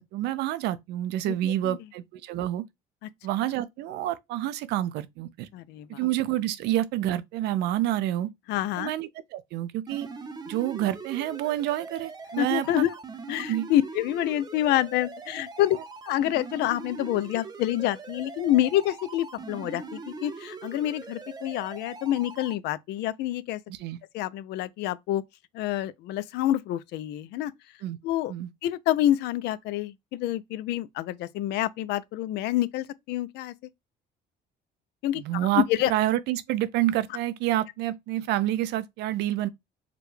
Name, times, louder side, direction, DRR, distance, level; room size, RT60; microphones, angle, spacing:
voice 1, 0.0-2.6 3.2-5.5 5.9-8.3 8.8-10.1 10.5-12.8 13.5-13.7 23.7-24.0 27.8-28.0 28.3-28.5 35.1-39.5, right 13 dB, 85° right, 0.5 m, -28 dB
voice 2, 5.5-6.0 8.5-8.9 12.4-12.9 13.3-15.8 16.0-23.6 24.1-25.2 25.5-27.5 28.0-28.3 28.6-33.5 35.0-35.9, left 13 dB, 80° left, 0.4 m, -27 dB
sound 1, 9.9-22.5, right 4 dB, 25° right, 0.6 m, -42 dB
4.9 x 2.2 x 3.1 m
cardioid pair, 110°, 17 cm